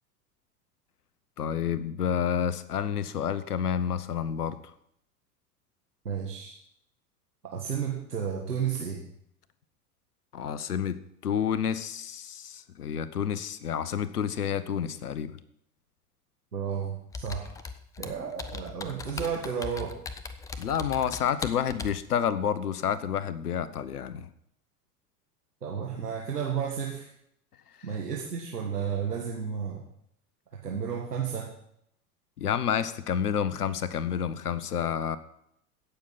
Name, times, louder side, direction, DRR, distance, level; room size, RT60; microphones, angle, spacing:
voice 1, 1.4-4.6 10.3-15.4 20.6-24.3 32.4-35.2, left 8 dB, 75° left, 16 dB, 0.9 m, -29 dB
voice 2, 6.1-6.6 7.4-9.0 16.5-17.5 18.0-20.0 25.6-27.1 27.8-29.8 30.6-31.5, right 7 dB, 80° right, -2 dB, 1.8 m, -32 dB
Computer keyboard, 17.1-22.0, left 4 dB, 10° left, 0.4 m, -39 dB
16.5 x 6.7 x 5.8 m, 0.75 s
figure-of-eight pair, 85°, 46 cm